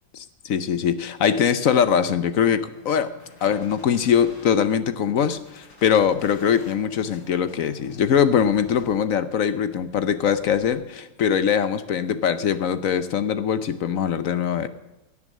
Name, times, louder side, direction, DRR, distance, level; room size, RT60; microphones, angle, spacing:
voice 1, 0.4-3.1 3.4-14.7, left 8 dB, 60° left, 13 dB, 1.0 m, -22 dB
sound 1, 2.7-4.5 5.2-9.2 9.7-10.7, left 3 dB, 90° left, 4.3 m, -49 dB
16.5 x 9.8 x 7.4 m, 0.97 s
omnidirectional pair, 2.0 m